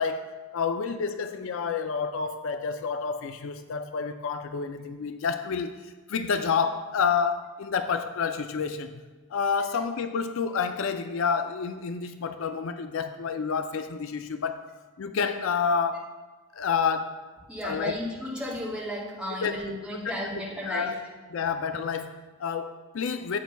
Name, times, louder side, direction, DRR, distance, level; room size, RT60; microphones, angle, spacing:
voice 1, 0.0-9.0 9.3-14.7 15.0-16.1 16.5-17.2 17.6-17.9 19.4-19.7 20.0-20.3 20.7-21.0 21.3-23.4, left 6 dB, 60° left, 9 dB, 0.4 m, -29 dB
voice 2, 17.5-20.9, equal, 5° right, -6 dB, 2.0 m, -34 dB
13.0 x 8.1 x 2.3 m, 1.3 s
head